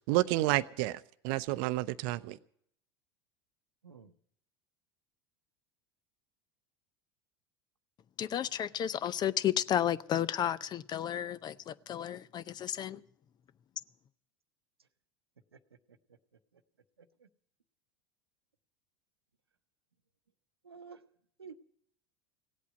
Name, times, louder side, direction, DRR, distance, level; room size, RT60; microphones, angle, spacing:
voice 1, 0.1-2.4, right 17 dB, 55° right, 0.6 m, -30 dB
voice 2, 3.8-4.1 15.5-15.6 15.9-16.2 16.5-16.6 17.0-17.3 20.6-21.0 21.4-21.6, right 5 dB, 85° right, 0.8 m, -52 dB
voice 3, 8.2-13.0, left 10 dB, 35° left, 0.6 m, -32 dB
17.0 x 8.4 x 9.1 m
figure-of-eight pair, 80°, 13 cm